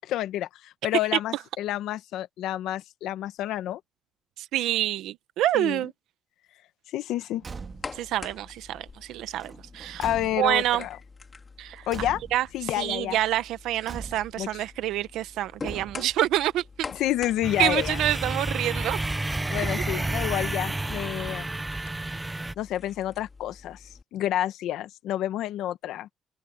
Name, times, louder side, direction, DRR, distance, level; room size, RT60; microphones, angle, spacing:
voice 1, 0.0-3.8 5.5-5.9 6.9-7.4 10.0-11.0 11.9-12.2 12.5-13.2 14.4-14.6 16.0-16.1 16.9-18.0 19.5-21.5 22.0-22.3 22.6-26.1, left 13 dB, 85° left, 1.0 m, -29 dB
voice 2, 4.4-5.9 7.9-10.0 10.4-10.8 11.6-11.9 12.3-12.5 12.8-16.6 17.6-19.0, right 13 dB, 85° right, 0.8 m, -27 dB
Car / Truck / Slam, 7.4-8.1 9.4-10.8 11.9-12.7 13.8-14.5 15.6-16.3, right 5 dB, 40° right, 1.6 m, -41 dB
sound 1, 7.5-24.0, left 4 dB, 35° left, 3.3 m, -46 dB
sound 2, 17.4-22.5, right 2 dB, 15° right, 0.5 m, -30 dB
cardioid pair, 90°, 0 cm